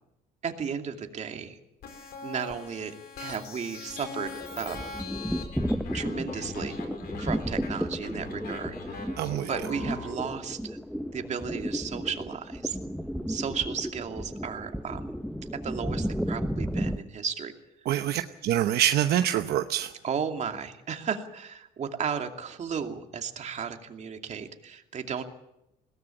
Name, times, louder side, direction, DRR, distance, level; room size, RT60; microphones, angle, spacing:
voice 1, 0.4-1.6 2.2-4.9 5.9-6.8 7.2-10.8 11.1-12.8 13.3-15.1 15.6-17.5 20.0-25.2, right 6 dB, 45° right, 5 dB, 2.6 m, -34 dB
sound 1, 1.8-10.1, left 4 dB, 65° left, 4.5 m, -41 dB
sound 2, 4.3-17.0, equal, ahead, 1.0 m, -33 dB
voice 2, 9.2-9.5 17.9-19.9, right 11 dB, 70° right, 8 dB, 0.9 m, -25 dB
21.5 x 17.5 x 8.9 m, 0.87 s
cardioid pair, 110°, 17 cm